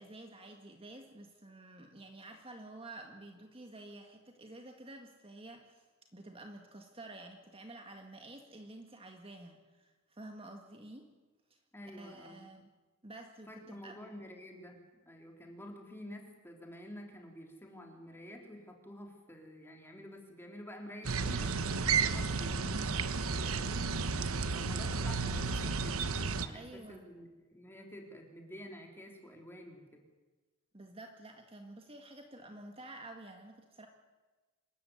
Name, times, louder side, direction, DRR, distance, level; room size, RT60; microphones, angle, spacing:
voice 1, 0.0-11.1 11.5-11.6 11.9-12.7 13.0-14.0 26.5-27.0 30.7-33.9, right 2 dB, 25° right, 4 dB, 1.8 m, -50 dB
voice 2, 11.7-12.4 13.5-14.8 15.1-26.0 26.4-30.0, equal, 10° left, 2 dB, 3.6 m, -50 dB
sound 1, 21.0-26.5, right 4 dB, 70° right, 1.2 m, -32 dB
26.0 x 14.5 x 9.7 m, 1.2 s
head